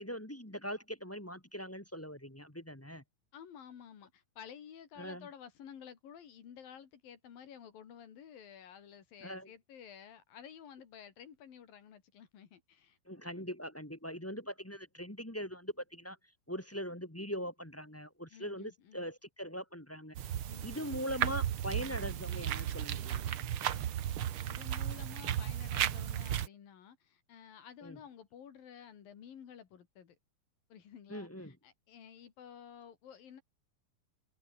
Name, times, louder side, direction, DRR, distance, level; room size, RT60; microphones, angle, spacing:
voice 1, 0.0-3.0 5.0-5.3 9.2-9.5 13.1-16.2 16.5-20.3 20.6-23.3 27.8-28.0 31.1-31.5, equal, 5° left, 1.3 m, -41 dB
voice 2, 3.3-13.0 18.3-19.1 20.5-20.8 24.5-30.2 30.7-33.4, left 8 dB, 70° left, 4.3 m, -52 dB
sound 1, 20.1-26.5, right 10 dB, 90° right, 1.1 m, -35 dB
omnidirectional pair, 4.2 m